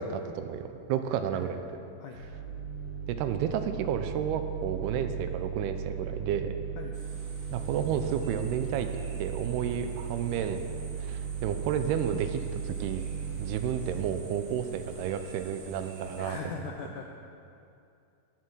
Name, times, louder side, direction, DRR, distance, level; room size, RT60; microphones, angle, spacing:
voice 1, 0.0-1.6 3.1-6.5 7.5-8.9 9.2-10.7 11.0-13.0 13.4-16.4, right 8 dB, 85° right, 8 dB, 2.7 m, -31 dB
sound 1, 2.2-14.1, right 7 dB, 60° left, 2.6 m, -37 dB
sound 2, 6.9-16.4, right 2 dB, 50° right, 1.4 m, -50 dB
voice 2, 16.2-17.0, left 6 dB, 90° left, 2 dB, 1.8 m, -40 dB
19.5 x 7.6 x 6.4 m, 2.6 s
omnidirectional pair, 4.6 m